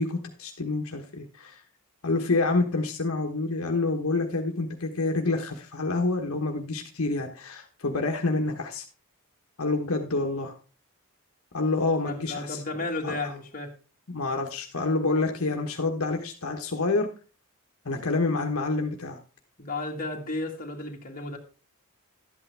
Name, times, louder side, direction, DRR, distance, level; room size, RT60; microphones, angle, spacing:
voice 1, 0.0-1.6 2.0-8.8 9.6-10.5 11.5-12.6 13.0-13.3 14.1-17.1 17.8-19.2, left 3 dB, 70° left, 3 dB, 1.2 m, -27 dB
voice 2, 12.1-13.7 19.6-21.4, left 2 dB, 40° left, 1 dB, 1.9 m, -33 dB
12.0 x 8.7 x 3.4 m, 0.35 s
head